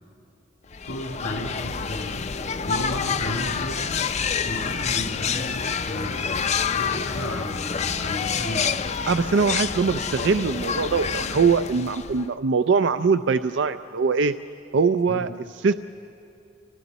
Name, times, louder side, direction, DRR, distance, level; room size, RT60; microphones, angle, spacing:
sound 1, 0.7-12.3, left 6 dB, 35° left, 0.5 m, -28 dB
voice 1, 0.8-2.3 2.6-4.0 4.4-6.5 6.7-8.7 15.1-15.3, left 1 dB, 90° left, 1 dB, 2.2 m, -33 dB
voice 2, 9.1-14.3 14.7-15.3 15.6-15.7, right 5 dB, 65° right, 11 dB, 0.4 m, -22 dB
29.5 x 24.0 x 4.1 m, 2.5 s
head